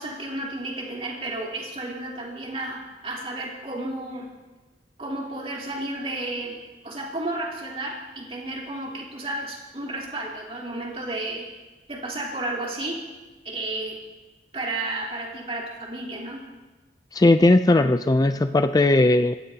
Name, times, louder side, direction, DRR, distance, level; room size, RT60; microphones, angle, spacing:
voice 1, 0.0-4.3 5.0-6.6 6.8-11.4 11.9-13.0 13.4-13.9 14.5-16.4, right 2 dB, 35° right, -3 dB, 3.4 m, -32 dB
voice 2, 17.1-19.4, left 2 dB, 20° left, 10 dB, 0.4 m, -18 dB
27.5 x 14.0 x 2.8 m, 1.2 s
head